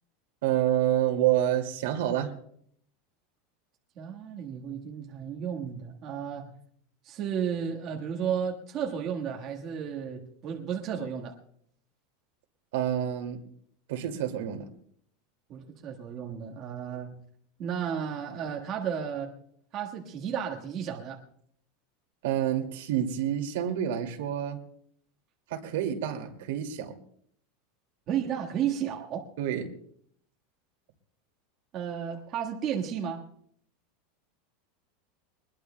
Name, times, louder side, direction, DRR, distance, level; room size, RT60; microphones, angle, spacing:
voice 1, 0.4-2.3 12.7-13.4 13.9-14.6 22.2-24.6 25.5-27.0 29.4-29.7, right 11 dB, 75° right, 4 dB, 2.2 m, -28 dB
voice 2, 4.0-6.5 7.0-11.4 15.5-17.1 17.6-19.3 19.7-21.2 28.1-29.3 31.7-33.2, right 8 dB, 30° right, 0 dB, 1.5 m, -33 dB
24.0 x 20.5 x 2.2 m, 0.65 s
supercardioid pair, 175°, 0 cm